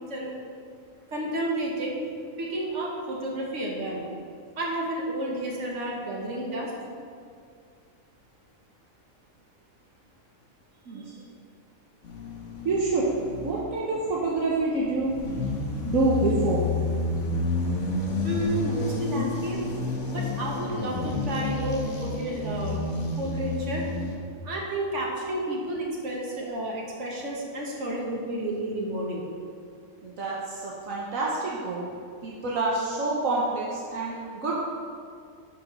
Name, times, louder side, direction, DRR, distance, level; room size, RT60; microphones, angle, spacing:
voice 1, 1.1-2.0 2.4-4.0 4.6-6.7 18.2-19.6 20.1-22.8 23.2-23.9 24.4-29.2, right 1 dB, 60° right, -2 dB, 1.8 m, -31 dB
sound 1, 12.0-13.7 14.3-24.2, left 3 dB, 60° left, 1.5 m, -30 dB
voice 2, 12.6-13.0 13.4-15.1 15.9-16.6 30.0-31.9 32.2-34.6, right 3 dB, 75° right, -5 dB, 1.5 m, -27 dB
11.0 x 5.0 x 5.4 m, 2.2 s
omnidirectional pair, 1.4 m